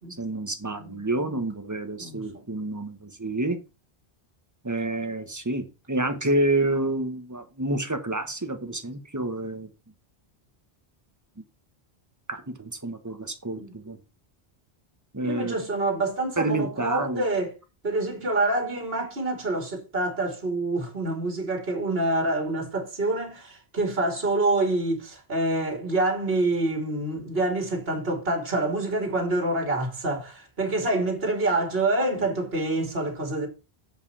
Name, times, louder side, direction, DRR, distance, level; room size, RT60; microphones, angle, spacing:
voice 1, 0.2-3.6 4.6-9.7 12.3-14.0 15.1-15.6 16.4-17.2, right 2 dB, 15° right, 1.2 m, -28 dB
voice 2, 0.8-1.4 2.0-2.5 13.5-13.8 15.2-17.6 17.8-33.5, right 2 dB, 65° right, 2.6 m, -27 dB
7.5 x 5.4 x 5.6 m
omnidirectional pair, 1.1 m